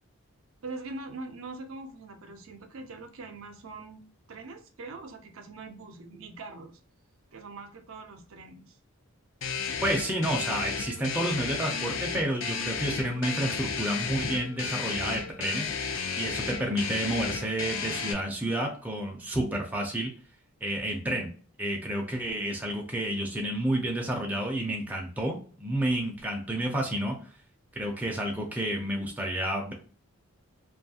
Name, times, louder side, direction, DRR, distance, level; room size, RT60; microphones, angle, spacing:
voice 1, 0.6-6.8 7.3-8.8, right 3 dB, 65° right, 6 dB, 0.5 m, -43 dB
sound 1, 9.4-18.1, left 5 dB, 60° left, 0.4 m, -33 dB
voice 2, 9.8-20.1 20.6-21.3 21.6-27.2 27.8-29.7, right 1 dB, 5° right, 0 dB, 0.4 m, -30 dB
2.6 x 2.3 x 2.7 m, 0.42 s
head